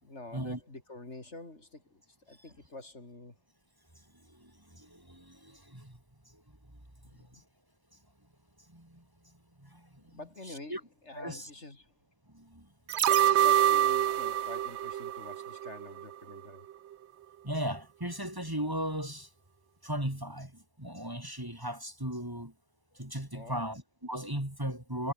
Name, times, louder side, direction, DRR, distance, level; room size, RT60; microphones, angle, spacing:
voice 1, 0.0-3.3 7.0-7.4 10.0-11.9 13.3-16.7 22.9-23.0 23.3-23.7, left 2 dB, 70° left, 4.5 m, -48 dB
voice 2, 4.2-6.0 6.3-6.4 8.7-9.0 9.6-10.2 10.5-10.8 11.2-11.5 12.3-12.7 17.4-19.3 19.8-22.5 23.0-25.1, right 1 dB, 15° right, 3.5 m, -37 dB
sound 1, 12.9-16.0 16.4-16.5, right 11 dB, 70° right, 1.0 m, -26 dB
omnidirectional pair, 1.2 m